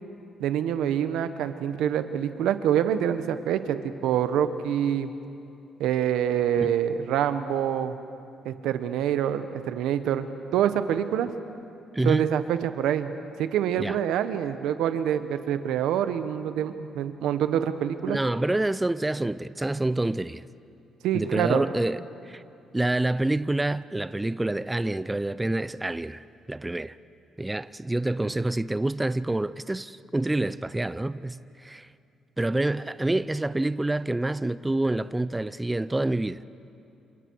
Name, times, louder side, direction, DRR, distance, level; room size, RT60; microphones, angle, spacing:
voice 1, 0.4-5.1 5.8-8.0 8.4-10.3 10.5-11.3 12.0-13.1 13.4-18.2 21.0-21.7, right 9 dB, 85° right, 1.1 m, -26 dB
voice 2, 11.9-12.3 13.8-14.0 18.1-20.4 21.1-22.0 22.2-22.4 22.7-27.0 27.4-31.9 32.4-36.4, right 2 dB, 15° right, 0.5 m, -27 dB
28.5 x 27.5 x 4.7 m
cardioid pair, 90°, 0 cm